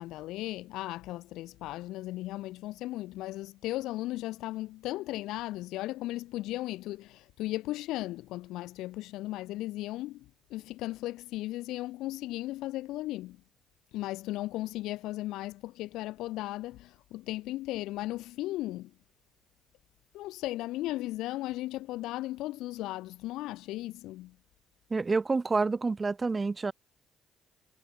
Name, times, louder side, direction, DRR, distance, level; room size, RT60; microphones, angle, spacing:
voice 1, 0.0-13.4 13.9-18.9 20.1-24.4, left 17 dB, 80° left, 3.6 m, -36 dB
voice 2, 24.9-26.7, right 4 dB, 30° right, 0.9 m, -28 dB
supercardioid pair, 65°, 0 cm